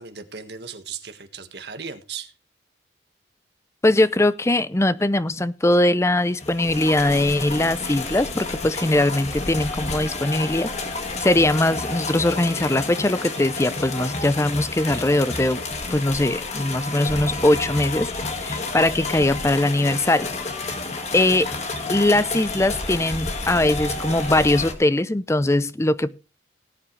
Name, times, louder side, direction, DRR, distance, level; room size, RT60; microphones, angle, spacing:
voice 1, 0.0-2.3, right 6 dB, 60° right, 1.6 m, -36 dB
voice 2, 3.8-10.7 11.2-15.6 15.9-18.1 18.4-20.3 21.1-21.5 21.9-26.1, left 1 dB, 15° left, 0.5 m, -21 dB
sound 1, 6.3-24.7, left 3 dB, 35° left, 1.9 m, -30 dB
18.5 x 8.7 x 3.2 m
head